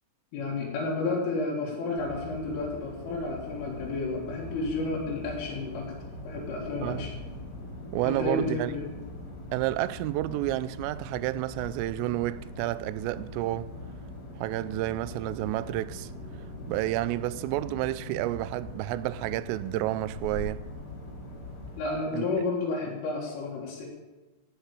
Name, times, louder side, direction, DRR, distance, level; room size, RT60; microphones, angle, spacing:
voice 1, 0.3-5.9 6.2-7.1 8.0-8.9 21.8-23.9, left 3 dB, 80° left, 4.4 m, -31 dB
sound 1, 1.9-21.8, left 1 dB, 30° left, 2.9 m, -42 dB
voice 2, 7.9-8.7 9.5-13.7 14.4-16.1 16.7-20.6 22.1-22.5, right 16 dB, 90° right, 3.1 m, -30 dB
15.5 x 5.8 x 8.3 m
omnidirectional pair, 5.7 m